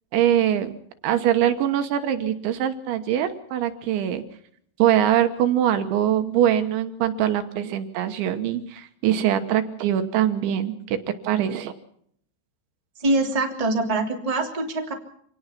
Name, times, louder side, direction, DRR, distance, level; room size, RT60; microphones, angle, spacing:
voice 1, 0.1-0.7 1.0-4.2 4.8-11.0 11.2-11.7, right 10 dB, 75° right, 8 dB, 3.4 m, -23 dB
voice 2, 13.0-14.9, right 2 dB, 10° right, 0 dB, 2.2 m, -24 dB
27.0 x 18.5 x 5.9 m, 0.67 s
omnidirectional pair, 5.6 m